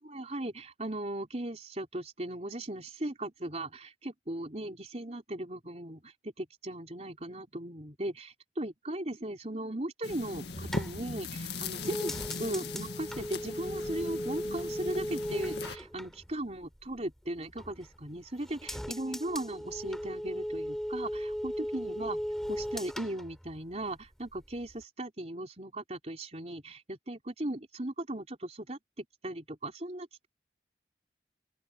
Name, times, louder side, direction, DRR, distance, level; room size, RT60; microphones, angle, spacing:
voice 1, 0.0-12.1 12.4-22.2 22.5-30.3, right 1 dB, 40° right, 4.2 m, -38 dB
sound 1, 10.0-15.8, left 3 dB, 75° left, 2.0 m, -39 dB
sound 2, 10.4-17.0 17.4-18.1 18.4-24.1 24.3-24.8, equal, ahead, 5.6 m, -38 dB
open air
head